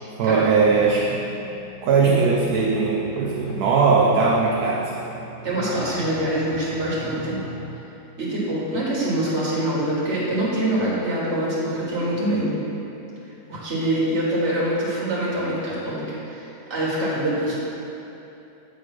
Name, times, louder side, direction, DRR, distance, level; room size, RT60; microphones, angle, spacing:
voice 1, 0.2-1.2 1.8-5.0, right 4 dB, 75° right, -2 dB, 1.1 m, -19 dB
sound 1, 0.6-7.6, left 1 dB, 80° left, 1.6 m, -39 dB
voice 2, 5.4-7.4 8.2-12.6 13.5-16.0 16.3-17.6, right 1 dB, 45° right, -7 dB, 1.8 m, -24 dB
7.7 x 3.2 x 5.9 m, 3.0 s
omnidirectional pair, 1.8 m